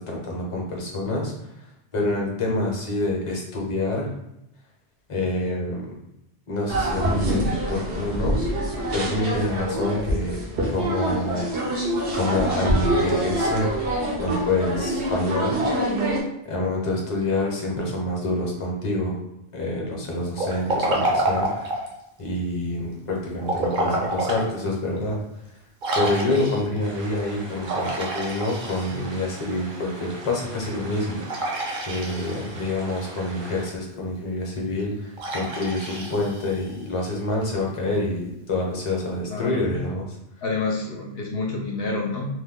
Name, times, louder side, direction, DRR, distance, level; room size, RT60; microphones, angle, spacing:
voice 1, 0.0-1.5 1.9-4.1 5.1-5.9 6.5-8.4 8.9-10.4 10.7-11.5 12.1-13.7 14.2-15.6 16.4-19.2 19.5-21.6 22.2-25.2 25.9-31.5 31.9-40.0, left 2 dB, 35° left, -1 dB, 0.7 m, -27 dB
sound 1, 6.7-16.2, right 1 dB, 80° right, 1.1 m, -25 dB
Liquid, 20.3-22.0 23.4-24.5 25.0-25.1 25.8-26.8 27.6-29.2 31.3-32.6 35.2-36.8, right 2 dB, 55° right, 0.8 m, -28 dB
sound 2, 26.8-33.7, right 2 dB, 35° right, 0.4 m, -40 dB
voice 2, 39.3-39.8 40.4-42.3, left 3 dB, 70° left, -1 dB, 0.8 m, -28 dB
2.9 x 2.1 x 3.6 m, 0.86 s
omnidirectional pair, 1.1 m